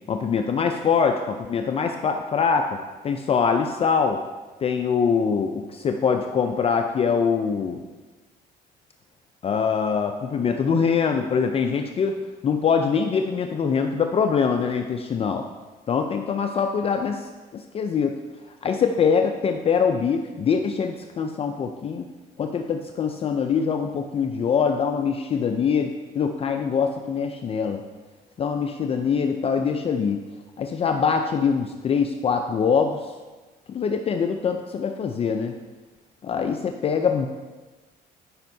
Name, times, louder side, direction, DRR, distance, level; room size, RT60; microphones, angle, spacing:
voice 1, 0.1-2.8 3.0-4.2 4.6-7.8 9.4-12.2 12.4-15.4 15.9-18.2 18.6-22.1 22.4-27.8 28.4-30.2 30.6-33.1 33.7-35.5 36.2-37.3, left 6 dB, 35° left, 5 dB, 0.4 m, -23 dB
12.0 x 5.3 x 2.7 m, 1.3 s
cardioid pair, 110°, 17 cm